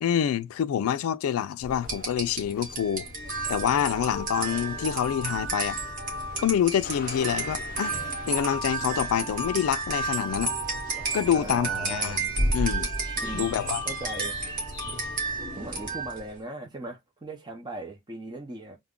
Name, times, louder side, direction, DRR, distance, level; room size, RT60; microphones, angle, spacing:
voice 1, 0.0-3.1 3.5-5.8 6.4-8.0 8.3-10.6 11.1-12.9 13.3-13.8, left 9 dB, 80° left, 0.3 m, -27 dB
sound 1, 1.6-15.3, left 3 dB, 45° left, 0.6 m, -44 dB
sound 2, 1.8-16.3, right 2 dB, 35° right, 1.0 m, -31 dB
voice 2, 11.3-12.2 13.2-13.5 13.8-14.4 15.5-18.8, right 1 dB, 20° right, 0.6 m, -38 dB
2.3 x 2.1 x 3.6 m
head